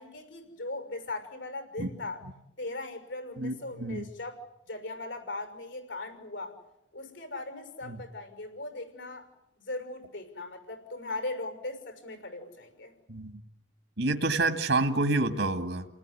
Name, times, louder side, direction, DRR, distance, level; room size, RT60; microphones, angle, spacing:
voice 1, 0.0-2.2 2.6-4.4 4.7-6.6 6.9-9.3 9.6-12.9, left 2 dB, 90° left, 7 dB, 6.3 m, -39 dB
voice 2, 3.4-4.0 7.9-8.0 13.1-13.4 14.0-15.9, right 2 dB, 75° right, 7 dB, 2.0 m, -28 dB
30.0 x 19.5 x 9.9 m, 0.83 s
head